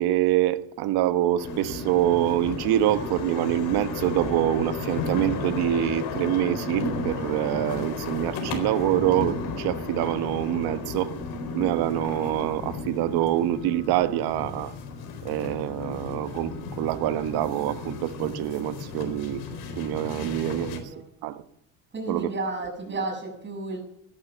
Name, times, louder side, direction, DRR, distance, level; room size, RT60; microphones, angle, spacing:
voice 1, 0.0-11.2 11.5-14.7 15.2-19.4 19.8-20.8 21.2-21.4 22.1-22.3, right 13 dB, 80° right, 1.3 m, -25 dB
sound 1, 1.4-20.8, left 4 dB, 75° left, 4.3 m, -34 dB
voice 2, 20.1-21.0 21.9-23.8, right 3 dB, 30° right, 6.7 m, -33 dB
16.5 x 12.0 x 7.2 m
cardioid pair, 135°, 37 cm